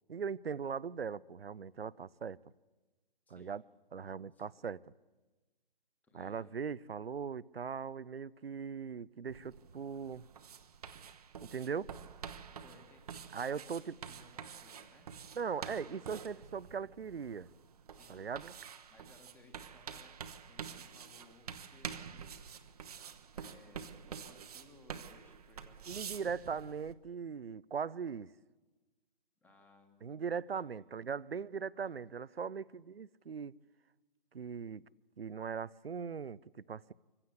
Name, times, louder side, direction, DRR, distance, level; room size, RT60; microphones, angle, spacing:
voice 1, 0.1-2.4 3.3-3.6 3.9-4.8 6.1-10.3 11.4-11.9 13.3-13.9 15.3-17.5 18.1-18.5 25.9-28.3 30.0-33.5 34.3-34.8 35.2-36.9, right 6 dB, 80° right, 22 dB, 0.6 m, -39 dB
voice 2, 3.3-3.6 4.3-4.5 6.0-6.6 12.5-13.0 13.4-15.1 15.7-16.0 18.0-18.3 18.9-22.4 22.8-26.0 26.4-26.7 29.4-30.8 31.7-32.0, left 2 dB, 5° left, 5 dB, 1.6 m, -63 dB
sound 1, 9.3-26.9, right 7 dB, 40° right, 1.0 m, -48 dB
24.5 x 16.0 x 8.1 m, 1.2 s
figure-of-eight pair, 145°, 29 cm